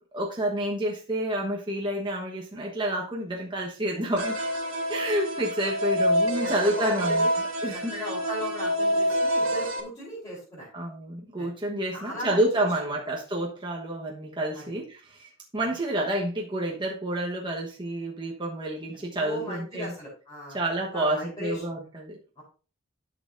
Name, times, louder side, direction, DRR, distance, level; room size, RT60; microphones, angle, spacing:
voice 1, 0.1-4.3 4.9-7.3 7.6-7.9 10.7-19.9 20.5-22.2, right 1 dB, 25° right, -2 dB, 1.2 m, -29 dB
sound 1, 4.2-9.8, equal, 80° right, 1.7 m, -27 dB
voice 2, 6.4-7.3 7.7-10.7 11.4-11.5 11.9-13.0 14.5-14.8 18.9-20.6 20.9-21.6 22.4-22.5, equal, 20° left, -9 dB, 3.7 m, -37 dB
11.5 x 6.5 x 2.6 m, 0.35 s
head